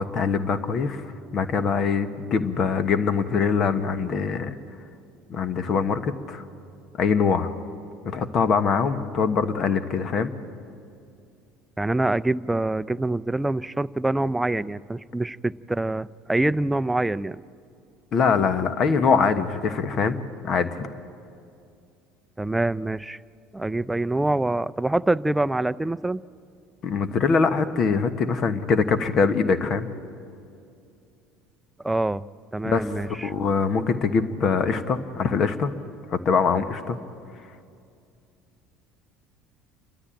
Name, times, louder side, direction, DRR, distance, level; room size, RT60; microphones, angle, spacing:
voice 1, 0.0-4.6 5.3-6.4 7.0-7.5 8.0-10.3 18.1-20.2 20.4-20.9 26.8-29.9 32.6-32.9 33.2-35.7 36.1-37.0, left 5 dB, 50° left, 11 dB, 1.3 m, -23 dB
voice 2, 11.8-17.4 22.4-23.2 23.5-26.2 31.8-32.2 32.5-33.3, right 2 dB, 10° right, 15 dB, 0.5 m, -25 dB
29.0 x 13.5 x 8.9 m, 2.5 s
hypercardioid pair, 75°, 0 cm